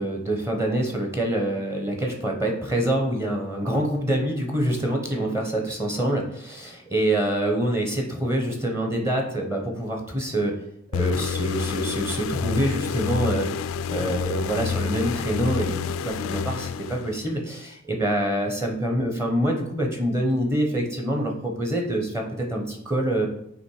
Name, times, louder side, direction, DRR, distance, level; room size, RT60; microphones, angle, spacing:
voice 1, 0.0-10.5 10.9-13.5 13.9-22.2 22.5-23.3, right 1 dB, 15° right, 1 dB, 0.9 m, -26 dB
sound 1, 10.9-17.4, left 6 dB, 80° left, 0.3 m, -29 dB
7.3 x 3.0 x 4.8 m, 0.73 s
head